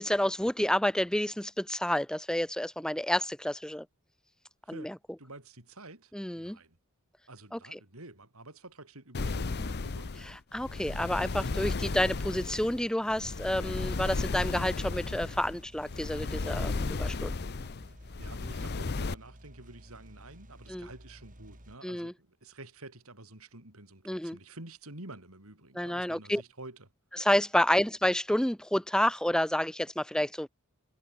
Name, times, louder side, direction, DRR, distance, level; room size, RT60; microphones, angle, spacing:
voice 1, 0.0-3.9 4.7-4.9 6.1-6.6 7.5-7.8 10.5-17.4 20.7-20.9 21.8-22.1 24.1-24.4 25.8-26.4 27.2-30.5, left 1 dB, 5° left, 0.6 m, -29 dB
voice 2, 5.2-6.8 7.3-10.2 18.2-26.9, right 2 dB, 75° right, 5.6 m, -49 dB
sound 1, 9.1-19.1, left 3 dB, 50° left, 0.7 m, -34 dB
sound 2, 14.7-21.8, right 1 dB, 40° right, 4.2 m, -53 dB
head